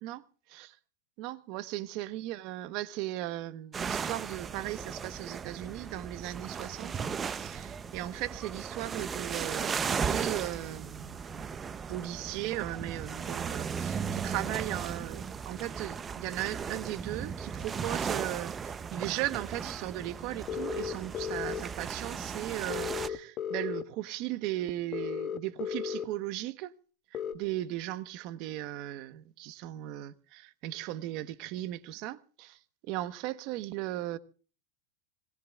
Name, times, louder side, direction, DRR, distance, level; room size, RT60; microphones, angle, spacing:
voice 1, 1.2-11.5 11.9-26.7 27.1-34.2, right 15 dB, 45° right, 1.1 m, -37 dB
sound 1, 3.7-23.1, right 6 dB, 20° right, 0.7 m, -36 dB
sound 2, 20.5-21.6 22.7-23.8 24.9-26.1 27.1-27.3, left 8 dB, 30° left, 1.5 m, -34 dB
25.5 x 19.5 x 2.4 m
supercardioid pair, 145°, 0 cm